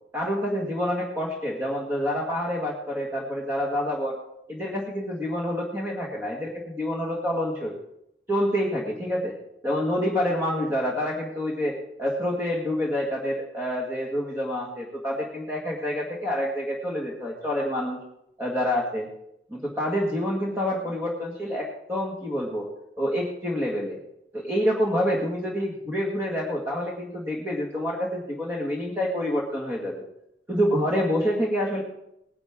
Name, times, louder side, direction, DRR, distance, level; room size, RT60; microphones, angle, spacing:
voice 1, 0.1-4.2 4.5-7.8 8.3-9.4 9.6-18.0 18.4-19.1 19.5-22.7 23.0-24.0 24.3-30.0 30.5-31.8, equal, 15° right, -3 dB, 1.9 m, -27 dB
19.5 x 10.5 x 3.7 m, 0.81 s
head